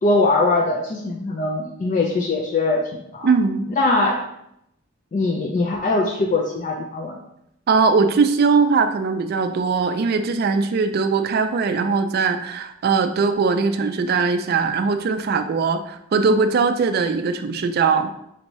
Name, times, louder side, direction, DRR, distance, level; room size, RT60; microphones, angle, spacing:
voice 1, 0.0-3.3 3.8-4.2 5.1-7.2, left 2 dB, 40° left, 1 dB, 0.4 m, -21 dB
voice 2, 3.2-3.7 7.7-18.1, right 4 dB, 50° right, 8 dB, 0.3 m, -20 dB
4.4 x 2.7 x 3.0 m, 0.77 s
head